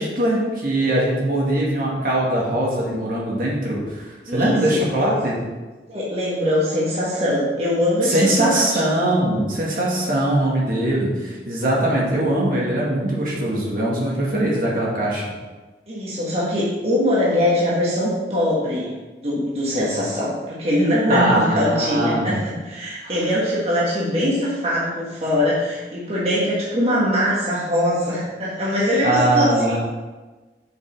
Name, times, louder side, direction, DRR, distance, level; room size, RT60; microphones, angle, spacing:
voice 1, 0.0-5.4 8.0-15.2 21.1-22.5 23.0-23.2 29.0-29.8, right 1 dB, 50° right, -4 dB, 2.0 m, -21 dB
voice 2, 4.3-5.2 5.9-8.8 15.9-18.9 19.2-29.8, left 1 dB, 35° right, -7 dB, 1.7 m, -22 dB
6.7 x 5.5 x 5.5 m, 1.2 s
head